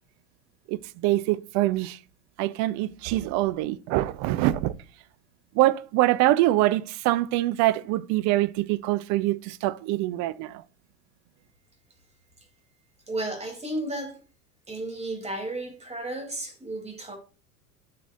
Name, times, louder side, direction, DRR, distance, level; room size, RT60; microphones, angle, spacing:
voice 1, 0.7-2.0 2.4-4.7 5.5-10.6, right 16 dB, 40° right, 0.6 m, -24 dB
voice 2, 13.1-14.2 14.7-17.2, right 1 dB, 15° right, 3.2 m, -33 dB
13.5 x 6.1 x 2.6 m
figure-of-eight pair, 80°, 44 cm